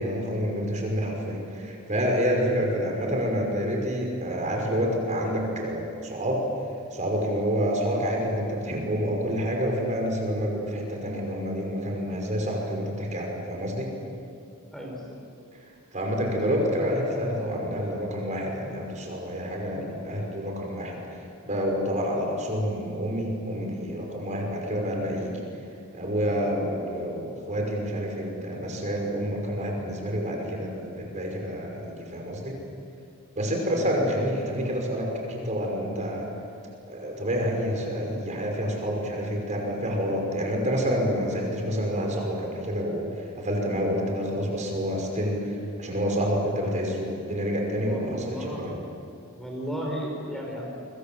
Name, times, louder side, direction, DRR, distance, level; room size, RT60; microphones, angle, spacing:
voice 1, 0.0-6.4 6.9-13.9 15.9-25.4 25.9-32.6 33.3-36.3 36.9-48.8, equal, 35° right, 0 dB, 5.7 m, -28 dB
voice 2, 14.7-15.0 19.7-19.9 33.6-33.8 46.6-46.9 47.8-48.7 49.3-50.7, equal, ahead, -1 dB, 4.8 m, -35 dB
29.0 x 25.0 x 7.8 m, 2.5 s
head